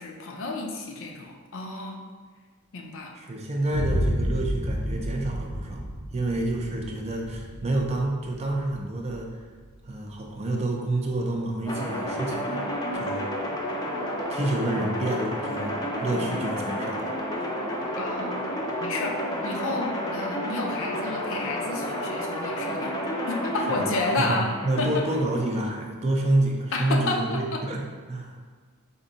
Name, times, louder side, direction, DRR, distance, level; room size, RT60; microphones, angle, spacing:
voice 1, 0.0-2.0 2.7-3.1 18.0-18.5 18.8-19.1 19.4-23.0 23.3-24.5 24.8-24.9 26.7-27.6, left 2 dB, 60° left, 1 dB, 0.6 m, -31 dB
voice 2, 3.1-5.8 6.1-9.3 9.9-13.3 14.3-17.0 23.7-23.9 24.2-27.8 28.1-28.4, right 2 dB, 30° right, 0 dB, 0.5 m, -28 dB
Boom, 3.7-11.6, equal, 75° right, 0.7 m, -32 dB
sound 1, 11.7-25.4, equal, 20° left, 0.5 m, -31 dB
4.4 x 2.7 x 3.9 m, 1.5 s
head